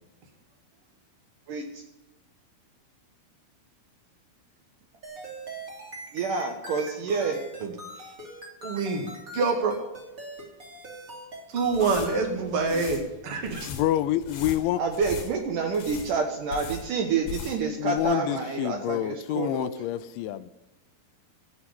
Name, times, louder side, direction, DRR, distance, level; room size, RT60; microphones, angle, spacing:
voice 1, 1.5-1.8 6.1-7.4 12.7-12.8 13.6-13.7 14.8-19.7, right 5 dB, 85° right, 1.8 m, -28 dB
sound 1, 5.0-12.3, equal, 30° right, 1.7 m, -41 dB
voice 2, 8.6-9.1 9.3-9.8 11.5-13.6, right 4 dB, 55° right, 1.7 m, -26 dB
sound 2, 11.6-17.7 18.0-18.1, left 5 dB, 60° left, 2.6 m, -40 dB
voice 3, 13.7-14.8 17.8-20.5, left 13 dB, 85° left, 2.7 m, -27 dB
15.0 x 5.9 x 9.8 m
omnidirectional pair, 5.8 m